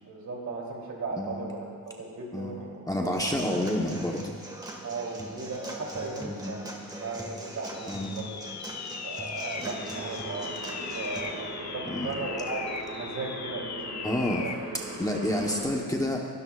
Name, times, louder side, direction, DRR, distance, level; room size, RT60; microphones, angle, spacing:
voice 1, 0.0-3.6 4.8-8.8 9.0-12.6 12.9-14.5 15.1-15.6, right 3 dB, 55° right, -1 dB, 3.0 m, -37 dB
voice 2, 2.3-4.3 6.3-6.5 7.9-8.1 9.6-9.7 11.8-12.1 14.0-14.5 15.0-16.3, left 1 dB, 10° left, -1 dB, 1.0 m, -29 dB
Human voice / Acoustic guitar / Drum, 3.2-11.2, right 1 dB, 10° right, 1.6 m, -42 dB
sound 1, 7.7-14.7, left 6 dB, 55° left, 0.7 m, -39 dB
sound 2, 9.5-15.6, right 2 dB, 85° right, 4.0 m, -40 dB
25.0 x 12.5 x 2.4 m, 2.1 s
cardioid pair, 130°, 34 cm